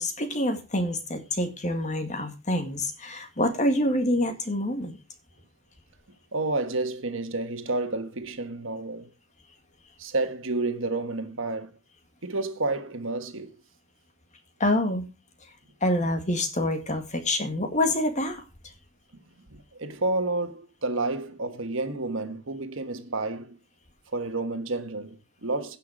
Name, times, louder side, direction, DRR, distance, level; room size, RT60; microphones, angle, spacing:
voice 1, 0.0-4.9 14.6-15.0 15.8-18.4, left 1 dB, 35° left, 2.0 m, -26 dB
voice 2, 6.3-9.1 10.0-11.8 12.2-13.5 19.5-23.6 24.1-25.8, right 2 dB, 70° right, 1.4 m, -30 dB
16.5 x 5.8 x 5.0 m
head